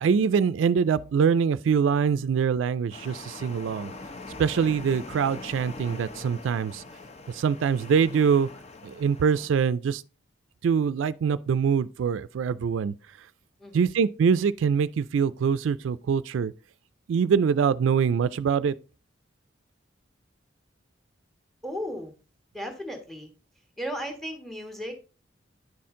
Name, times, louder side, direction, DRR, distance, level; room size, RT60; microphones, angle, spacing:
voice 1, 0.0-3.9 4.4-6.8 7.3-8.5 8.8-10.0 10.6-12.9 13.7-16.5 17.1-18.7, right 6 dB, 90° right, 0.3 m, -24 dB
sound 1, 2.9-9.5, left 3 dB, 35° left, 0.7 m, -42 dB
voice 2, 21.6-22.1 22.5-23.3 23.8-24.9, equal, ahead, 1.4 m, -35 dB
9.8 x 4.3 x 3.6 m
head